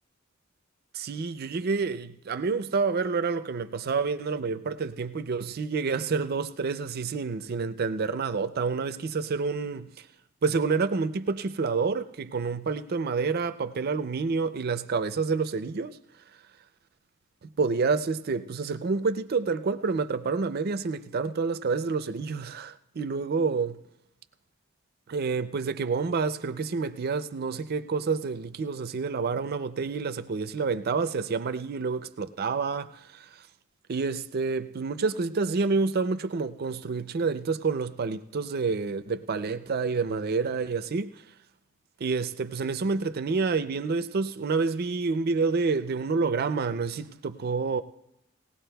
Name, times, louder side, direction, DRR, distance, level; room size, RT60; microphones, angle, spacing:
voice 1, 0.9-10.1 10.4-16.0 17.6-23.8 25.1-33.5 33.9-41.2 42.0-47.8, right 4 dB, 50° right, 0.4 m, -28 dB
18.5 x 18.0 x 2.3 m
head